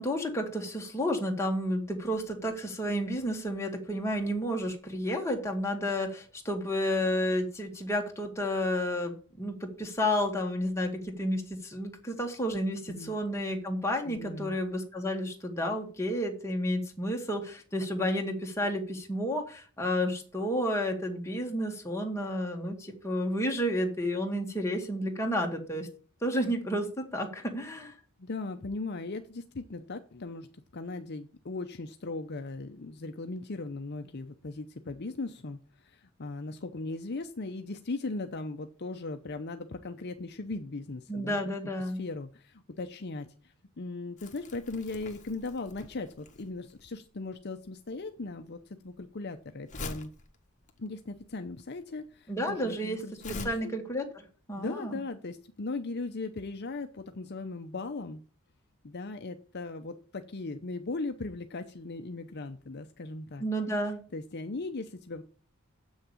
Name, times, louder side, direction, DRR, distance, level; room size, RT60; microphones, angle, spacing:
voice 1, 0.0-25.9 26.2-28.0 41.1-42.0 52.3-53.0 53.4-54.1 54.5-54.9 63.4-64.0, equal, 15° left, 1 dB, 2.0 m, -31 dB
voice 2, 14.0-14.6 28.2-41.4 41.8-50.1 50.8-53.6 54.6-58.2 58.8-63.4 64.1-65.2, left 3 dB, 50° left, 7 dB, 0.7 m, -38 dB
Crumpling crinkling, 44.2-53.5, left 3 dB, 35° left, 1.4 m, -46 dB
8.0 x 6.4 x 7.2 m, 0.38 s
head